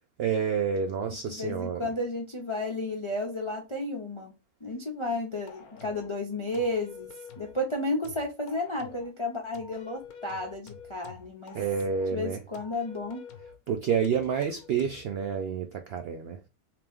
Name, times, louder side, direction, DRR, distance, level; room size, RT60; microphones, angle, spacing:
voice 1, 0.2-1.8 11.5-12.4 13.7-16.4, right 7 dB, 70° right, 0.5 m, -29 dB
voice 2, 1.3-4.3 4.6-11.6 12.1-13.2, left 2 dB, 35° left, 0.4 m, -32 dB
sound 1, 5.5-6.1 6.5-7.6 8.0-9.1 9.5-12.1 12.5-13.6 14.0-15.1, left 6 dB, 90° left, 1.2 m, -48 dB
3.3 x 2.9 x 3.4 m
omnidirectional pair, 1.5 m